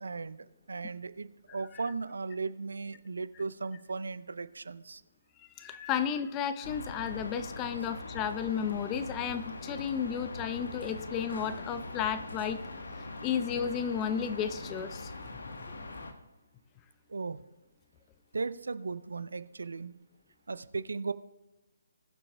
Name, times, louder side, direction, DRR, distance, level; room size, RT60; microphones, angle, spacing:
voice 1, 0.0-5.0 17.1-17.4 18.3-20.0 20.5-21.1, right 4 dB, 75° right, 15 dB, 0.5 m, -37 dB
voice 2, 5.6-12.6 13.2-15.1, left 8 dB, 20° left, 12 dB, 0.6 m, -33 dB
sound 1, 6.6-16.1, left 2 dB, 70° left, 1.3 m, -42 dB
20.5 x 7.0 x 2.3 m, 1.1 s
figure-of-eight pair, 145°, 0 cm